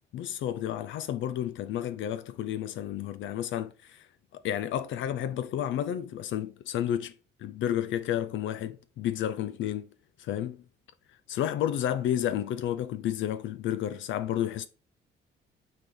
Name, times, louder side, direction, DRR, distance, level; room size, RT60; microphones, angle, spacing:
voice 1, 0.1-4.1 4.4-7.1 7.4-9.9 10.2-10.6 11.3-14.7, left 11 dB, 75° left, 0.5 m, -31 dB
5.6 x 5.3 x 3.2 m
cardioid pair, 90°, 20 cm